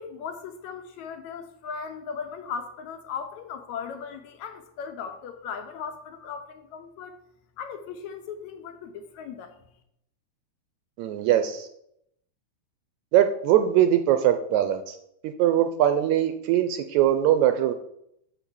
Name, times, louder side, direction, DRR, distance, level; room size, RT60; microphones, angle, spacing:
voice 1, 0.0-7.2 7.6-9.6, left 6 dB, 75° left, 7 dB, 1.9 m, -37 dB
voice 2, 11.0-11.7 13.1-14.9 15.2-17.7, right 11 dB, 80° right, 9 dB, 1.7 m, -21 dB
6.3 x 6.0 x 6.9 m, 0.77 s
omnidirectional pair, 3.7 m